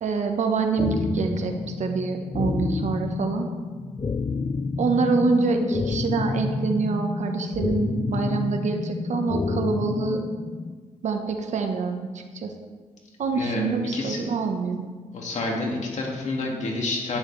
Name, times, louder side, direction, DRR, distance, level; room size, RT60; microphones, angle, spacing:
voice 1, 0.0-3.5 4.8-10.2 11.0-12.5 13.2-14.9, right 4 dB, 65° right, 4 dB, 1.3 m, -26 dB
sound 1, 0.8-10.8, left 4 dB, 30° left, 0.5 m, -29 dB
voice 2, 13.3-13.6 13.9-14.2 15.1-17.2, left 2 dB, 65° left, -1 dB, 2.4 m, -28 dB
11.5 x 9.9 x 3.4 m, 1.4 s
cardioid pair, 85°, 13 cm